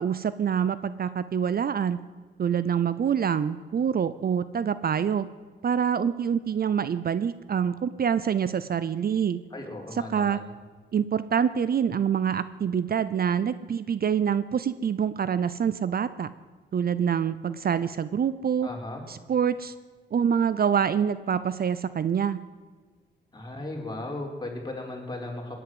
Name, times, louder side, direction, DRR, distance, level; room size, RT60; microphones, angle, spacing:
voice 1, 0.0-2.0 2.4-5.3 5.6-9.4 9.9-10.4 10.9-16.3 16.7-18.7 19.1-19.7 20.1-22.4, right 7 dB, 50° right, 15 dB, 0.6 m, -26 dB
voice 2, 9.5-10.5 18.6-19.0 23.3-25.6, left 2 dB, 20° left, 0 dB, 4.3 m, -36 dB
18.0 x 10.0 x 7.8 m, 1.4 s
cardioid pair, 80°, 20 cm